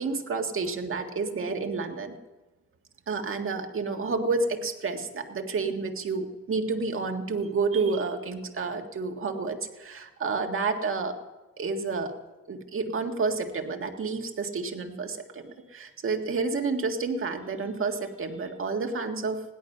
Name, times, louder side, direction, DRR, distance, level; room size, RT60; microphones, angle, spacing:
voice 1, 0.0-2.1 3.1-11.2 11.6-12.1 12.5-19.4, right 4 dB, 45° right, 4 dB, 1.7 m, -30 dB
16.5 x 11.0 x 5.5 m, 1.1 s
cardioid pair, 90°, 30 cm